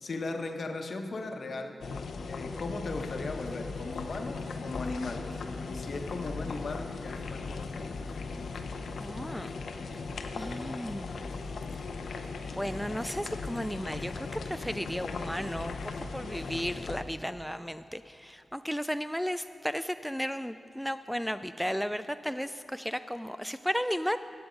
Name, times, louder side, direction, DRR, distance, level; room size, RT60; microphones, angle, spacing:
voice 1, 0.0-1.8 2.3-5.3 5.6-8.1, left 3 dB, 65° left, 5 dB, 1.1 m, -37 dB
sound 1, 1.8-17.0, left 4 dB, 80° left, 0.7 m, -38 dB
sound 2, 2.9-16.9, equal, 35° right, 3.0 m, -53 dB
voice 2, 9.0-9.5 10.3-11.2 12.5-24.2, equal, ahead, 10 dB, 0.3 m, -34 dB
16.0 x 8.0 x 5.3 m, 2.5 s
cardioid pair, 40°, 0 cm